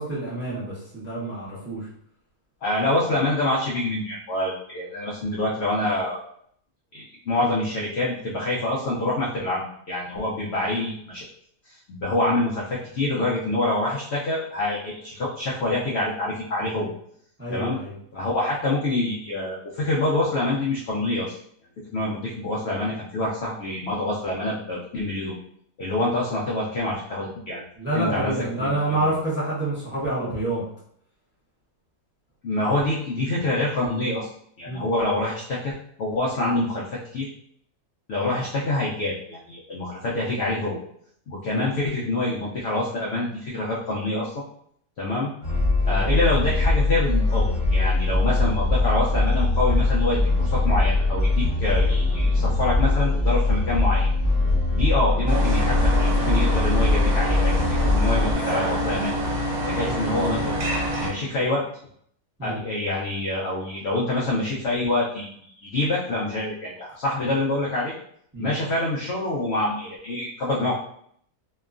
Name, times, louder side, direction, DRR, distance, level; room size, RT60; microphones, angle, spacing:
voice 1, 0.0-1.9 17.4-17.9 27.8-30.6 34.7-34.8 41.5-41.7 62.4-62.6 68.3-68.5, right 2 dB, 10° right, -8 dB, 0.6 m, -27 dB
voice 2, 2.6-6.2 6.9-11.2 11.7-16.9 17.5-17.8 18.1-21.4 21.9-25.4 25.8-27.6 27.9-28.3 28.6-29.1 32.4-34.3 34.6-37.3 38.1-40.8 41.3-44.4 45.0-45.3 45.9-54.1 54.7-59.1 59.7-60.6 61.0-61.6 62.4-67.9 68.4-70.7, left 2 dB, 75° left, -5 dB, 0.6 m, -26 dB
sound 1, 45.4-58.3, left 2 dB, 30° left, 0.8 m, -21 dB
sound 2, 55.3-61.1, equal, 65° right, 1.1 m, -26 dB
2.9 x 2.2 x 2.4 m, 0.66 s
omnidirectional pair, 1.7 m